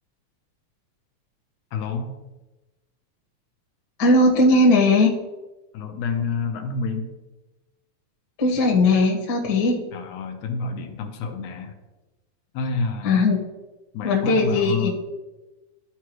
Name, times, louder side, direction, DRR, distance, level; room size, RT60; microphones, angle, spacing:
voice 1, 1.7-2.1 5.7-7.1 9.9-11.8 12.5-13.2 13.9-14.9, left 4 dB, 85° left, 4 dB, 2.3 m, -28 dB
voice 2, 4.0-5.1 8.4-9.8 13.0-13.4 14.0-14.9, left 2 dB, 45° left, -1 dB, 1.6 m, -18 dB
13.5 x 4.7 x 3.0 m, 1.1 s
omnidirectional pair, 3.4 m